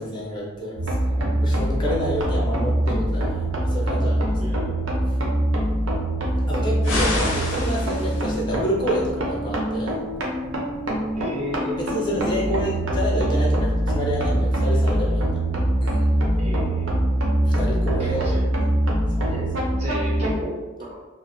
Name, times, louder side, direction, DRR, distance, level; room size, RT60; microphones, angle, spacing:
voice 1, 0.0-4.3 6.5-9.9 11.8-15.4 15.8-16.1 17.4-18.3 19.2-19.3, equal, 25° left, -5 dB, 0.4 m, -28 dB
sound 1, 0.8-20.4, right 1 dB, 90° right, 0.6 m, -23 dB
voice 2, 4.4-4.8 11.1-11.8 16.4-16.9 18.0-18.4 19.3-19.5 19.8-20.9, left 1 dB, 35° right, -3 dB, 0.5 m, -33 dB
sound 2, 6.8-8.4, left 2 dB, 85° left, 0.5 m, -27 dB
2.4 x 2.1 x 2.5 m, 1.2 s
head